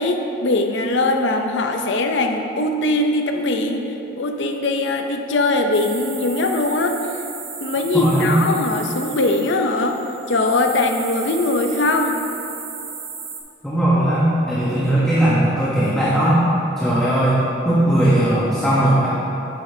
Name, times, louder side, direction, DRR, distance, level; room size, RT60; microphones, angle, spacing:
voice 1, 0.0-3.9 4.1-7.0 7.6-10.0 10.3-12.2, left 2 dB, 75° left, 4 dB, 0.6 m, -21 dB
sound 1, 5.7-13.4, right 5 dB, 55° right, 1.0 m, -35 dB
voice 2, 7.9-8.4 13.6-16.4 16.8-17.4 17.6-19.1, right 1 dB, 5° left, -9 dB, 0.9 m, -18 dB
8.4 x 7.8 x 2.8 m, 3.0 s
head